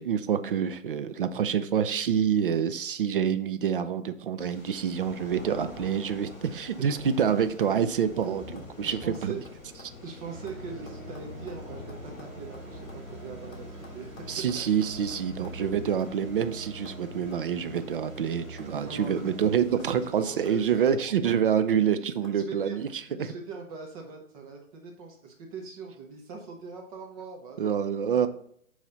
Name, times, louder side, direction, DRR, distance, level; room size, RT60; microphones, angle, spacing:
voice 1, 0.0-9.3 14.3-22.9 23.2-23.3 27.6-28.3, right 8 dB, 45° right, 11 dB, 0.4 m, -27 dB
sound 1, 4.4-20.9, left 2 dB, 15° left, 2.6 m, -47 dB
sound 2, 6.9-7.0 7.3-10.0 10.2-13.0 13.5-15.6 16.0-16.1 16.4-16.5 16.8-17.0 17.3-17.4 17.7-18.8 19.0-20.1 20.4-20.6 20.9-21.8 22.2-22.4, left 3 dB, 30° left, 1.6 m, -53 dB
voice 2, 8.8-9.4 10.0-14.1 14.4-14.8 15.4-15.7 18.8-19.3 19.7-21.3 22.0-27.8 28.1-28.3, right 5 dB, 25° right, 1 dB, 0.9 m, -42 dB
sound 3, 10.3-19.5, right 1 dB, 85° right, 1.7 m, -43 dB
9.3 x 3.2 x 4.0 m, 0.68 s
figure-of-eight pair, 135°, 41 cm